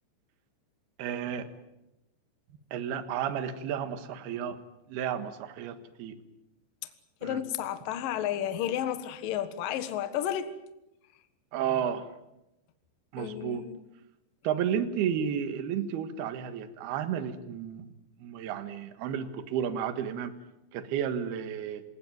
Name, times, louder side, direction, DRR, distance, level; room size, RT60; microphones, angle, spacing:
voice 1, 1.0-1.5 2.7-4.6 4.9-6.2 7.2-7.4 11.5-12.1 13.1-13.7 14.4-17.9 18.2-20.3 20.7-21.8, right 8 dB, 65° right, 3.3 m, -32 dB
voice 2, 7.2-10.5 13.2-13.8, left 10 dB, 60° left, 2.7 m, -32 dB
27.5 x 18.0 x 9.4 m
omnidirectional pair, 5.3 m